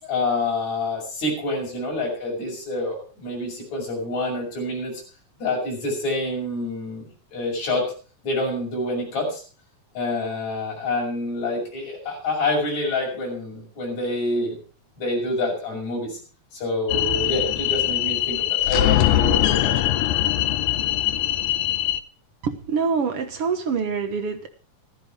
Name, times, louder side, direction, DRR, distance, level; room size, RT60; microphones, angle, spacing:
voice 1, 0.0-5.0 5.4-7.0 7.3-7.9 8.2-9.4 9.9-14.6 15.0-16.2 16.5-19.9, left 2 dB, 60° left, -1 dB, 7.5 m, -27 dB
sound 1, 16.9-22.0, left 14 dB, 75° left, 2.1 m, -22 dB
voice 2, 22.4-24.5, right 5 dB, 55° right, 7 dB, 1.8 m, -25 dB
14.0 x 14.0 x 4.7 m, 0.40 s
omnidirectional pair, 3.6 m